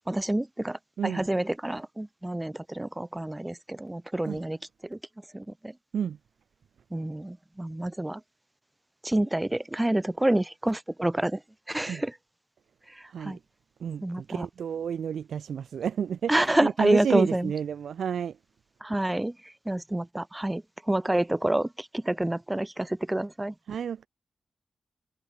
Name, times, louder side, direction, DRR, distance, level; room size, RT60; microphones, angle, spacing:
voice 1, 0.1-4.6 4.9-5.0 5.3-5.4 6.9-8.2 9.0-11.4 11.7-12.1 13.2-13.4 14.0-14.5 16.3-17.5 18.8-19.3 19.7-20.6 20.9-23.5, right 1 dB, 15° right, 4.0 m, -28 dB
voice 2, 13.1-13.4 13.8-18.4 23.7-24.1, right 8 dB, 85° right, 6.1 m, -30 dB
cardioid pair, 50°, 0 cm